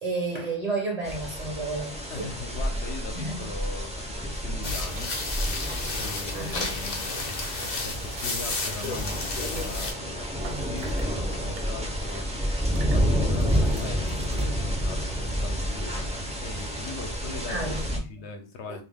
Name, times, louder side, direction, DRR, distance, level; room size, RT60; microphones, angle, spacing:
voice 1, 0.0-2.3 3.1-3.4 6.3-6.7 16.8-17.0 17.5-18.2 18.7-18.8, right 3 dB, 40° right, 0.7 m, -32 dB
sound 1, 1.0-18.0, equal, 10° right, 0.4 m, -30 dB
voice 2, 2.1-5.5 6.0-7.1 7.6-12.5 12.9-16.1 16.4-18.8, left 3 dB, 75° left, 0.9 m, -40 dB
sound 2, 4.4-5.2 5.5-8.4 8.6-11.1 11.6-11.7 12.0-12.3 12.7-14.9, right 2 dB, 80° right, 0.9 m, -43 dB
sound 3, 4.6-9.9, left 3 dB, 50° left, 0.6 m, -32 dB
2.4 x 2.2 x 3.3 m
omnidirectional pair, 1.2 m